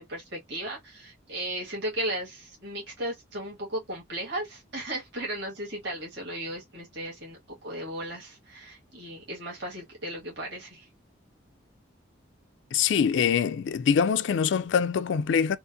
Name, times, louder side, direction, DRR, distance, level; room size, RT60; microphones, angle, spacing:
voice 1, 0.0-10.9, right 1 dB, 60° right, 1.8 m, -36 dB
voice 2, 12.7-15.6, left 7 dB, 70° left, 0.3 m, -24 dB
3.8 x 2.5 x 2.6 m
head